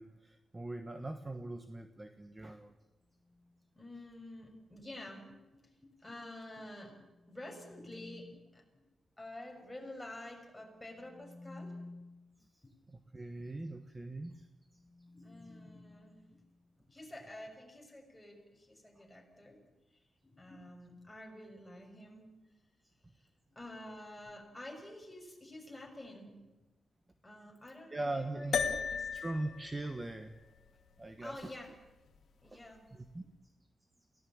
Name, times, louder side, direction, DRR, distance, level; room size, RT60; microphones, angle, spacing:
voice 1, 0.0-2.7 12.4-12.6 12.9-14.5 27.9-28.9 29.1-30.3 31.0-31.5 32.4-32.6 32.9-33.2, right 2 dB, 20° right, 8 dB, 1.2 m, -41 dB
sound 1, 3.2-3.6 6.8-8.6 10.7-12.4 14.4-16.8, left 2 dB, 25° left, 1.4 m, -54 dB
voice 2, 3.7-8.9 9.2-11.8 12.6-12.7 15.1-16.4 16.9-19.6 19.9-22.3 23.1-26.4 27.2-29.1 31.2-31.7 32.4-32.8, left 1 dB, 10° left, 1 dB, 6.2 m, -49 dB
sound 2, 28.5-33.1, left 6 dB, 70° left, 2.3 m, -39 dB
28.5 x 17.5 x 8.8 m, 1.1 s
wide cardioid pair, 135°, 0 cm